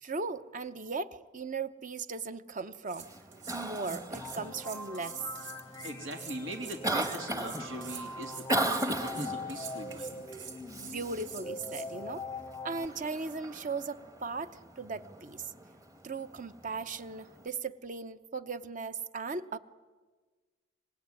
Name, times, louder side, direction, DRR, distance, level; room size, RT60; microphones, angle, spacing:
voice 1, 0.0-3.1 3.5-5.3 10.8-12.3 12.6-15.4 16.0-19.6, right 4 dB, 40° right, 12 dB, 0.9 m, -37 dB
sound 1, 2.6-2.7 2.9-11.9, right 6 dB, 65° right, 3.4 m, -46 dB
Cough, 3.0-17.5, right 1 dB, 20° right, 1.4 m, -39 dB
sound 2, 4.1-12.9, left 2 dB, 15° left, 0.7 m, -43 dB
voice 2, 5.8-10.3, equal, 85° right, 4 dB, 3.1 m, -41 dB
25.5 x 21.0 x 9.6 m, 1.4 s
head